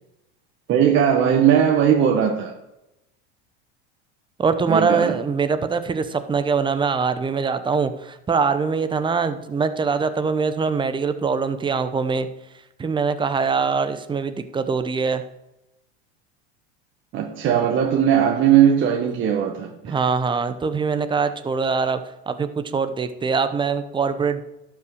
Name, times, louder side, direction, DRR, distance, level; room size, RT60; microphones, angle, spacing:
voice 1, 0.7-2.5 4.7-5.1 17.1-19.9, right 9 dB, 40° right, 0 dB, 1.4 m, -18 dB
voice 2, 4.4-12.3 12.8-15.2 19.8-22.0 22.3-24.4, right 5 dB, 15° right, 10 dB, 0.8 m, -23 dB
12.0 x 5.9 x 6.4 m, 0.90 s
supercardioid pair, 120°, 32 cm